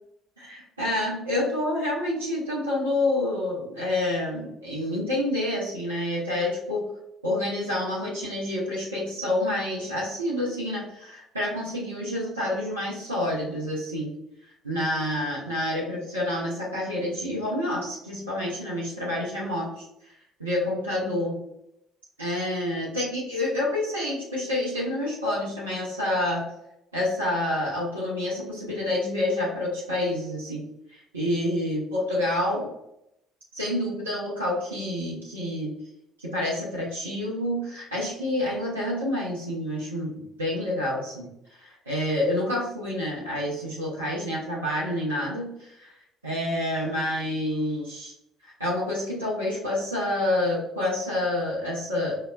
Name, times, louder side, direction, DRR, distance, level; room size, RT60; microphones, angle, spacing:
voice 1, 0.4-6.8 7.2-14.1 14.6-19.8 20.4-21.3 22.2-26.5 26.9-30.6 30.9-32.7 33.5-35.7 36.2-41.3 41.6-45.9 46.2-48.1 48.4-52.2, left 1 dB, 85° right, -6 dB, 0.7 m, -28 dB
5.6 x 2.1 x 2.2 m, 0.81 s
figure-of-eight pair, 50°, 0 cm